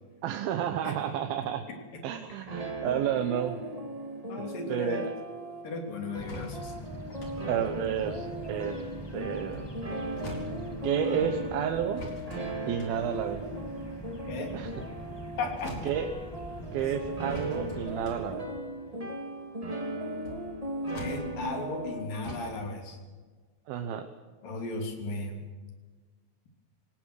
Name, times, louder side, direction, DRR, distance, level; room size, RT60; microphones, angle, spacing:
voice 1, 0.2-1.6 2.0-3.6 4.4-5.1 7.5-9.8 10.8-12.0 12.7-13.4 14.5-14.7 15.8-16.1 16.7-18.5 23.7-24.1, right 9 dB, 80° right, 6 dB, 2.9 m, -31 dB
sound 1, 2.5-22.0, right 1 dB, 15° right, 1.4 m, -37 dB
voice 2, 4.3-5.0 5.6-6.7 14.3-14.5 15.4-15.7 16.8-16.9 21.0-23.0 24.4-25.4, left 2 dB, 65° left, 3 dB, 4.8 m, -35 dB
sound 2, 6.2-18.4, equal, 15° left, 1.0 m, -43 dB
sound 3, 6.3-8.9 9.3-11.1 11.9-15.3 15.6-16.6 17.3-21.9 22.2-22.6, left 1 dB, 45° left, 5.3 m, -45 dB
26.0 x 19.0 x 6.5 m, 1.4 s
omnidirectional pair, 4.3 m